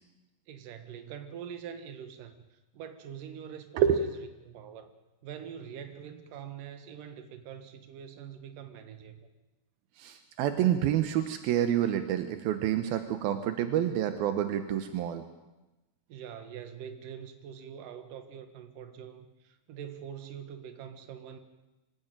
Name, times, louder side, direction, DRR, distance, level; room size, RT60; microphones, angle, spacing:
voice 1, 0.5-4.1 4.4-4.9 5.2-9.3 16.1-21.4, right 8 dB, 65° right, 8 dB, 3.2 m, -44 dB
voice 2, 10.0-15.2, right 10 dB, 80° right, 9 dB, 2.9 m, -28 dB
25.0 x 16.0 x 9.0 m, 1.0 s
omnidirectional pair, 4.2 m